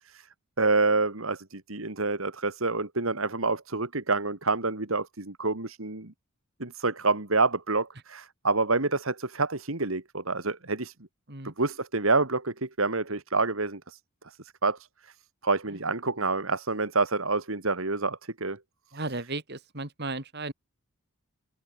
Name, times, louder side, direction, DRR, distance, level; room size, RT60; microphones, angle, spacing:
voice 1, 0.6-6.1 6.6-10.9 11.4-14.0 14.3-14.4 14.6-14.8 15.4-18.6, right 3 dB, 70° right, 2.5 m, -27 dB
voice 2, 18.9-20.5, right 2 dB, 50° right, 3.7 m, -35 dB
head